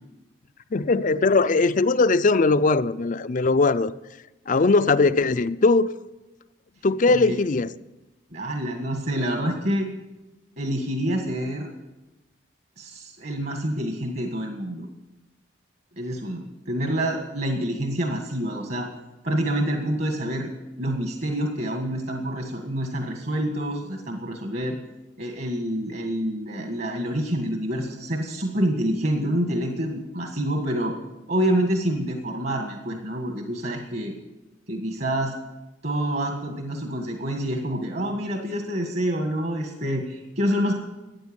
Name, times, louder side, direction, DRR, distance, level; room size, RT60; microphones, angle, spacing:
voice 1, 0.7-3.9 4.5-5.9 6.8-7.7, left 3 dB, 45° left, 0.5 m, -20 dB
voice 2, 8.3-9.9 10.6-11.7 12.8-14.9 16.0-18.9 19.2-20.5 20.8-24.8 25.2-30.9 31.3-34.1 34.7-35.3 35.8-40.7, right 1 dB, 55° right, 1.8 m, -27 dB
14.0 x 9.1 x 8.9 m
head